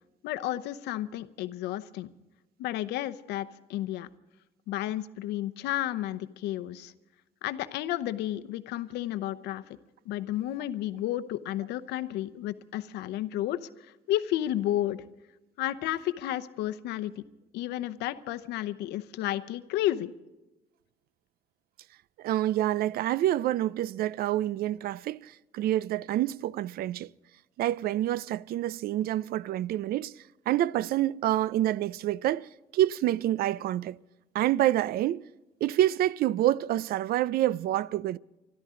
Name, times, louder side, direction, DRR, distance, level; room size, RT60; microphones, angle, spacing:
voice 1, 0.2-2.1 2.6-4.1 4.7-6.9 7.4-9.6 10.1-13.7 14.1-15.0 15.6-17.2 17.5-20.1, left 13 dB, 85° left, 0.8 m, -32 dB
voice 2, 22.2-27.1 27.6-30.1 30.5-34.0 34.3-35.3 35.6-38.2, right 13 dB, 65° right, 0.4 m, -27 dB
24.5 x 13.5 x 3.8 m
cardioid pair, 110°, 17 cm